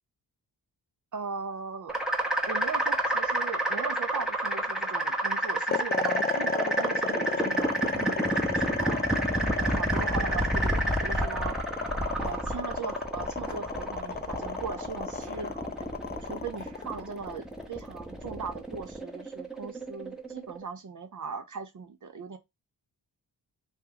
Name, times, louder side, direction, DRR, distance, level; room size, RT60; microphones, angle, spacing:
voice 1, 1.1-2.0 2.5-9.0 9.6-11.6 12.2-15.5 16.2-22.4, right 5 dB, 45° right, 0.7 m, -39 dB
sound 1, 1.9-20.6, right 1 dB, ahead, 0.9 m, -30 dB
sound 2, 5.7-18.0, left 5 dB, 25° left, 0.4 m, -33 dB
sound 3, 8.8-9.1 9.9-10.3 11.2-11.5 12.3-12.6 13.5-13.8 15.2-15.7 16.6-17.3, right 3 dB, 80° right, 1.4 m, -45 dB
2.9 x 2.6 x 3.9 m
supercardioid pair, 50°, 44 cm